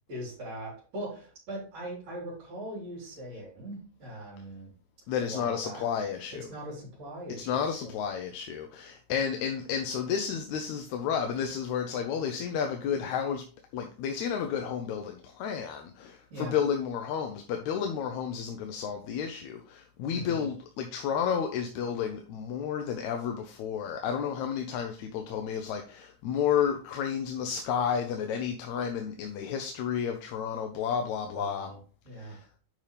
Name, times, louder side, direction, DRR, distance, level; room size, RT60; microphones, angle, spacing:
voice 1, 0.1-4.7 5.2-5.8 6.3-7.9 16.3-16.6 20.1-20.5 31.3-31.8 32.0-32.4, right 1 dB, 55° right, 5.2 m, -40 dB
voice 2, 5.1-6.5 7.3-13.4 13.7-31.7 32.1-32.5, left 7 dB, 75° left, 2.0 m, -31 dB
9.1 x 5.5 x 3.4 m
omnidirectional pair, 3.6 m